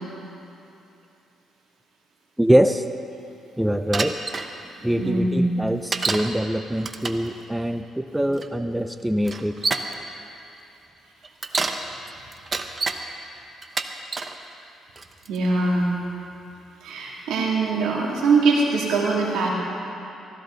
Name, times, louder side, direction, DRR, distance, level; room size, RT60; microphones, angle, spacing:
voice 1, 2.4-2.8 3.6-4.2 4.8-9.6, equal, 5° right, 9 dB, 0.5 m, -23 dB
Bicycle, 3.9-4.5 5.9-6.3 6.8-7.3 8.4-8.5 9.2-9.9 11.2-11.8 12.3-13.0 13.6-14.3 15.0-15.4, right 4 dB, 35° right, 0.8 m, -27 dB
voice 2, 5.0-5.5 7.2-7.3 15.3-15.9 16.8-19.5, right 3 dB, 90° right, -3 dB, 2.7 m, -22 dB
15.5 x 15.0 x 4.0 m, 2.8 s
cardioid pair, 90°, 0 cm